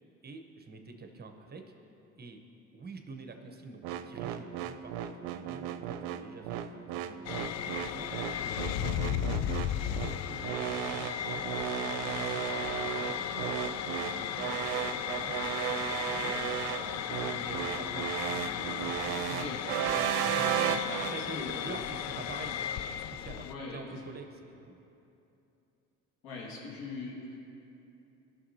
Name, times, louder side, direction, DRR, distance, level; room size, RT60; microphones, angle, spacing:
voice 1, 0.2-1.7 2.2-2.4 2.7-8.1 8.6-11.4 11.8-15.6 15.9-16.4 16.7-18.1 18.4-19.5 19.9-20.5 21.0-24.8, right 4 dB, 25° right, 5 dB, 0.9 m, -47 dB
sound 1, 3.8-21.2, right 10 dB, 75° right, 0.5 m, -34 dB
sound 2, 7.2-23.5, left 10 dB, 50° left, 0.4 m, -35 dB
voice 2, 19.3-19.6 20.5-21.8 23.4-24.0 26.2-27.4, left 3 dB, 75° left, -3 dB, 2.0 m, -42 dB
15.0 x 6.1 x 2.8 m, 2.9 s
hypercardioid pair, 65°, 36 cm